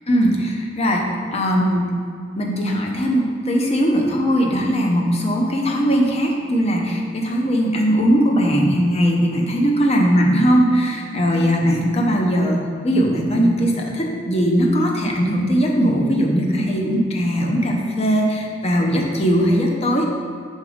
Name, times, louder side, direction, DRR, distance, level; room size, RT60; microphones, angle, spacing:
voice 1, 0.1-2.0 2.4-20.0, equal, 35° left, 0 dB, 0.7 m, -19 dB
5.6 x 3.9 x 4.9 m, 2.2 s
head